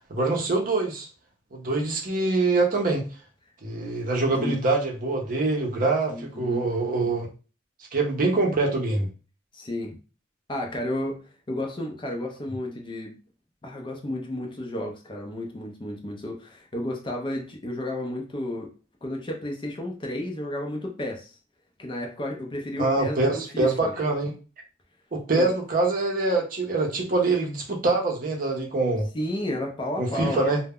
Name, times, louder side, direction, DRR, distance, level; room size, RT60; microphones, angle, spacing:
voice 1, 0.1-1.1 1.5-3.0 3.6-7.3 7.9-9.1 22.8-24.3 25.1-29.1 30.0-30.6, right 3 dB, 45° right, 0 dB, 0.6 m, -24 dB
voice 2, 6.1-6.6 9.5-10.0 10.5-11.2 11.5-13.2 13.6-18.7 19.0-21.3 21.8-23.9 25.4-25.5 29.1-30.5, left 1 dB, 25° left, 1 dB, 0.4 m, -32 dB
2.1 x 2.0 x 3.5 m, 0.35 s
head